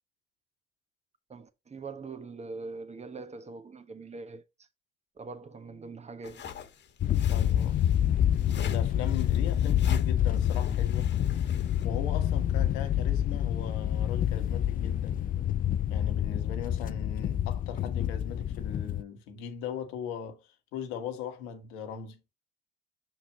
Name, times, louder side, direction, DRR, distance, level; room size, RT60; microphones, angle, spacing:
voice 1, 1.3-4.7 5.1-6.7, right 4 dB, 30° right, 1.3 m, -43 dB
sound 1, 6.2-11.9, left 7 dB, 60° left, 1.4 m, -44 dB
sound 2, 7.0-19.0, left 10 dB, 45° left, 0.4 m, -27 dB
voice 2, 7.3-7.8 8.4-11.1 11.8-15.2 15.9-20.4 20.7-22.2, left 7 dB, 85° left, 1.4 m, -39 dB
6.0 x 6.0 x 2.8 m
supercardioid pair, 60°, 21 cm